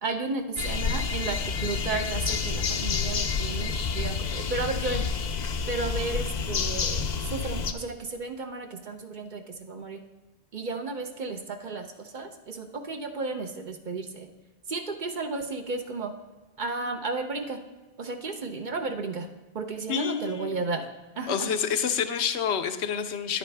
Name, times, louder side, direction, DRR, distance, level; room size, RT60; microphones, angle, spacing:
voice 1, 0.0-5.0 5.7-10.0 10.5-14.3 14.7-16.1 16.6-17.6 18.0-19.3 19.5-20.9 21.2-21.5, right 3 dB, 50° right, 6 dB, 0.8 m, -33 dB
sound 1, 0.6-7.7, left 5 dB, 50° left, 0.6 m, -29 dB
voice 2, 19.9-20.6 21.3-23.4, left 7 dB, 80° left, 9 dB, 0.9 m, -28 dB
10.0 x 9.1 x 3.4 m, 1.1 s
omnidirectional pair, 1.1 m